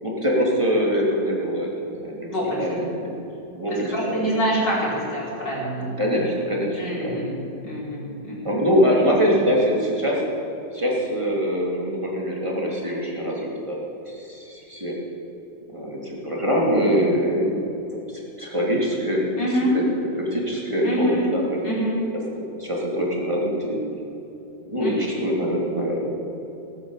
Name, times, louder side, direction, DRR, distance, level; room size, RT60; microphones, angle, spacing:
voice 1, 0.0-3.1 3.5-4.3 5.8-7.2 7.6-7.7 8.4-10.2 10.7-13.8 14.1-14.9 15.7-17.5 18.1-19.2 20.2-21.6 22.3-23.8 24.7-26.1, equal, 15° right, -4 dB, 3.0 m, -24 dB
voice 2, 2.3-2.8 3.7-5.9 6.8-8.6 9.0-9.4 19.4-19.8 20.8-21.3 21.6-22.0 24.8-24.9, equal, 65° left, -6 dB, 5.2 m, -26 dB
19.0 x 8.8 x 7.5 m, 3.0 s
omnidirectional pair, 2.0 m